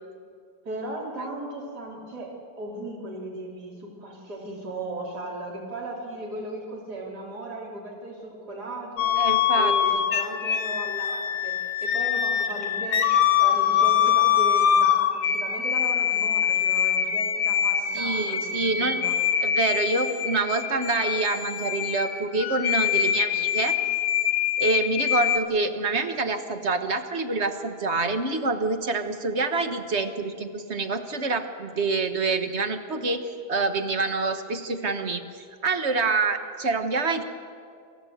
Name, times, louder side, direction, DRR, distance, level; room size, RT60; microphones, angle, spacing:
voice 1, 0.7-2.3 2.6-9.2 9.6-19.2, right 1 dB, 55° right, -2 dB, 3.9 m, -37 dB
sound 1, 9.0-25.4, left 9 dB, 90° left, 1.9 m, -24 dB
voice 2, 9.2-9.7 17.9-19.0 19.4-23.8 24.6-35.2 35.6-37.2, right 3 dB, 40° right, 7 dB, 1.3 m, -26 dB
27.5 x 14.5 x 7.8 m, 2.3 s
omnidirectional pair, 2.1 m